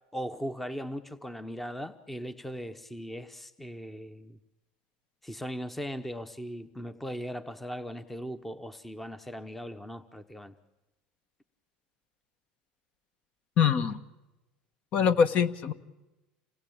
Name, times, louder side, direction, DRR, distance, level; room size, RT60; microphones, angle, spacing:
voice 1, 0.1-4.4 5.2-10.5, equal, 5° left, 11 dB, 0.9 m, -38 dB
voice 2, 13.6-14.0 14.9-15.7, left 7 dB, 45° left, 12 dB, 1.4 m, -23 dB
28.0 x 19.5 x 8.8 m, 1.0 s
supercardioid pair, 125°, 3 cm